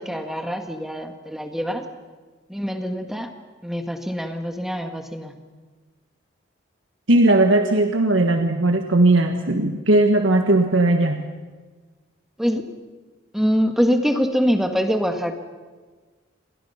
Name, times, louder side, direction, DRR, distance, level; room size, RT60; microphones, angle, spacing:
voice 1, 0.0-1.9 2.5-3.3 3.6-5.3 12.4-12.6 13.3-15.4, equal, ahead, 5 dB, 1.7 m, -24 dB
voice 2, 7.1-11.2, right 2 dB, 75° right, 4 dB, 1.6 m, -18 dB
29.5 x 23.0 x 5.8 m, 1.4 s
head